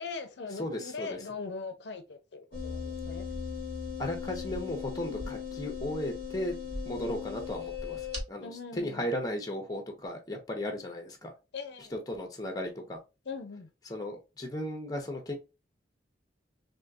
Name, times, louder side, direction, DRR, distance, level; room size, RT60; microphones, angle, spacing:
voice 1, 0.0-3.3 4.5-4.6 8.4-9.1 11.5-12.0 13.3-13.7, left 4 dB, 65° left, 0.6 m, -41 dB
voice 2, 0.6-1.2 4.0-6.5 6.8-11.3 11.9-13.0 13.9-15.3, left 1 dB, 20° left, 0.8 m, -36 dB
sound 1, 2.5-8.2, left 5 dB, 65° right, 1.5 m, -38 dB
3.5 x 2.7 x 2.6 m
head